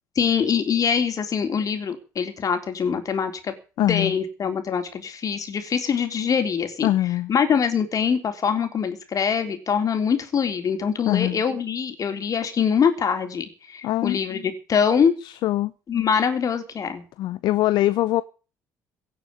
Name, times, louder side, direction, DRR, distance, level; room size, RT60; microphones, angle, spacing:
voice 1, 0.2-6.9 7.3-15.1 15.9-17.0, left 7 dB, 45° left, 3.7 m, -24 dB
voice 2, 3.8-4.1 6.8-7.3 11.1-11.4 13.8-14.2 15.2-15.7 17.2-18.2, left 15 dB, 65° left, 0.7 m, -22 dB
17.5 x 6.9 x 9.7 m
hypercardioid pair, 60°, 8 cm